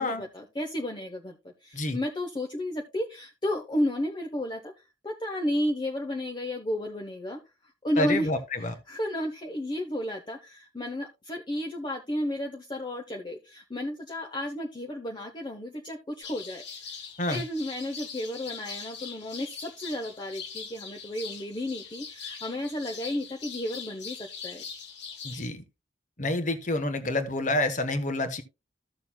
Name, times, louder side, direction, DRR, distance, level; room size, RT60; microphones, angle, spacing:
voice 1, 0.0-7.4 7.8-8.3 8.9-16.9 17.3-24.6, left 1 dB, 25° left, 0.8 m, -33 dB
voice 2, 8.0-8.8 17.2-17.4 25.2-25.6 26.2-28.4, left 1 dB, 45° left, 1.2 m, -28 dB
sound 1, 16.2-25.5, left 6 dB, 70° left, 1.6 m, -42 dB
14.5 x 6.7 x 2.3 m
head